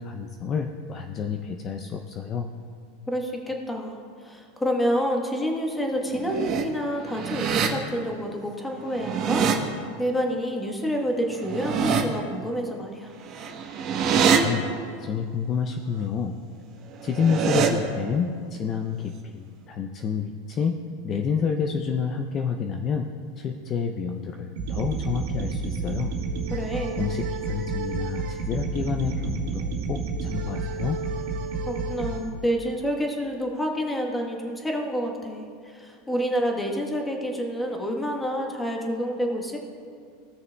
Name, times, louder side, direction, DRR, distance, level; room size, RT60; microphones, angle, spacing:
voice 1, 0.0-2.5 14.2-14.7 14.9-16.4 17.0-20.8 21.0-23.1 23.4-26.1 27.0-31.0, left 6 dB, 30° left, 4 dB, 0.5 m, -29 dB
voice 2, 3.1-9.5 9.8-13.1 26.5-27.0 31.7-39.6, equal, 10° left, 1 dB, 1.1 m, -28 dB
sound 1, 6.0-6.6 7.0-7.7 8.8-9.5 11.3-12.0 13.2-14.4 16.9-17.7, right 7 dB, 40° right, 1.0 m, -24 dB
sound 2, 24.6-32.2, right 4 dB, 85° right, 1.7 m, -30 dB
16.5 x 6.5 x 2.2 m, 2.2 s
supercardioid pair, 140°, 0 cm